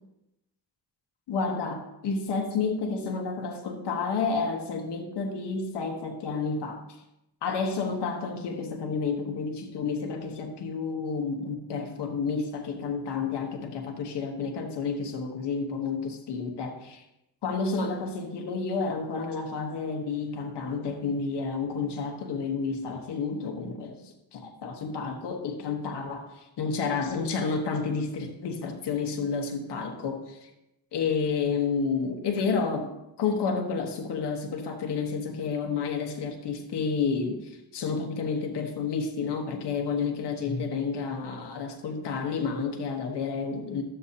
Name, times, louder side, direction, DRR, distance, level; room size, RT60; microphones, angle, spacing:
voice 1, 1.3-6.8 7.4-17.0 17.4-30.5 30.9-43.8, left 5 dB, 90° left, 3 dB, 1.2 m, -30 dB
12.5 x 7.8 x 2.8 m, 0.87 s
cardioid pair, 65°, 40 cm